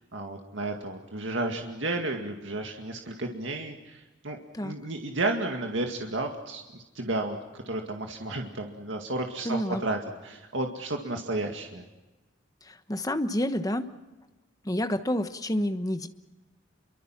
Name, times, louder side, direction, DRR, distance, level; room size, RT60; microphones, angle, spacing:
voice 1, 0.0-11.8, right 2 dB, 70° right, 3 dB, 2.1 m, -32 dB
voice 2, 9.4-9.8 12.9-13.9 14.6-16.1, left 1 dB, 20° left, 9 dB, 1.2 m, -28 dB
28.0 x 24.0 x 6.0 m, 1.1 s
head